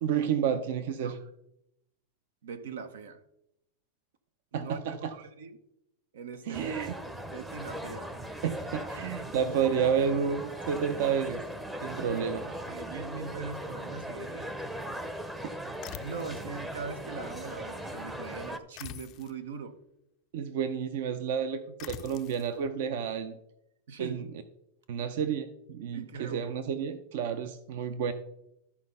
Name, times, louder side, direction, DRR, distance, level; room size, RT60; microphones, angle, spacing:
voice 1, 0.0-1.2 4.5-5.2 6.5-6.9 8.4-11.4 11.8-12.5 15.4-15.5 20.3-23.4 24.0-24.2 24.9-28.1, right 7 dB, 60° right, 0.7 m, -30 dB
voice 2, 2.4-3.2 4.5-5.6 6.1-8.2 12.3-14.5 16.0-19.8 23.9-24.2 25.9-26.4, right 5 dB, 85° right, 1.0 m, -41 dB
sound 1, 6.5-18.6, equal, 5° right, 0.7 m, -39 dB
sound 2, 15.8-16.5 18.8-19.4 21.8-22.5, left 14 dB, 35° left, 0.4 m, -44 dB
12.5 x 4.3 x 5.4 m
supercardioid pair, 150°, 0 cm